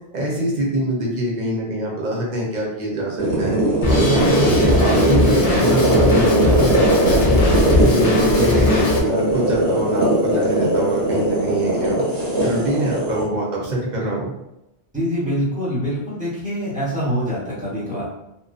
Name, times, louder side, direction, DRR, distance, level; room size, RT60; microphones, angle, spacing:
voice 1, 0.1-3.6 3.9-7.2 7.8-12.1 12.4-14.3, right 1 dB, 50° right, -3 dB, 0.7 m, -24 dB
sound 1, 3.2-13.2, right 1 dB, 85° right, 1.0 m, -19 dB
Drum kit, 3.8-9.0, left 3 dB, 50° left, 0.5 m, -21 dB
sound 2, 7.7-12.7, left 2 dB, 75° left, 0.8 m, -32 dB
voice 2, 14.9-18.0, equal, 10° right, -7 dB, 0.9 m, -24 dB
2.5 x 2.1 x 2.4 m, 0.87 s
omnidirectional pair, 1.1 m